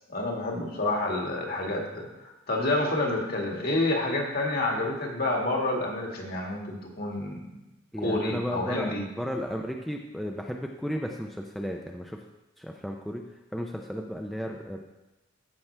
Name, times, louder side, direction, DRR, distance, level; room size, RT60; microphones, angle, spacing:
voice 1, 0.1-7.5 8.0-9.0, left 2 dB, 50° left, 0 dB, 1.8 m, -29 dB
voice 2, 7.9-12.2 12.6-13.2 13.5-14.8, equal, ahead, 1 dB, 0.5 m, -34 dB
14.5 x 5.9 x 3.3 m, 0.98 s
head